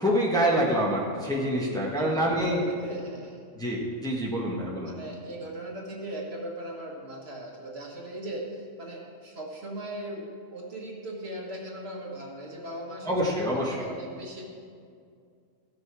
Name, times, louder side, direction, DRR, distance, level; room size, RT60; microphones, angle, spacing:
voice 1, 0.0-2.6 3.6-4.9 13.0-13.9, equal, 5° left, -3 dB, 1.2 m, -26 dB
voice 2, 1.5-3.4 4.8-14.4, right 1 dB, 50° right, -1 dB, 1.7 m, -39 dB
15.0 x 6.6 x 4.7 m, 2.2 s
omnidirectional pair, 1.4 m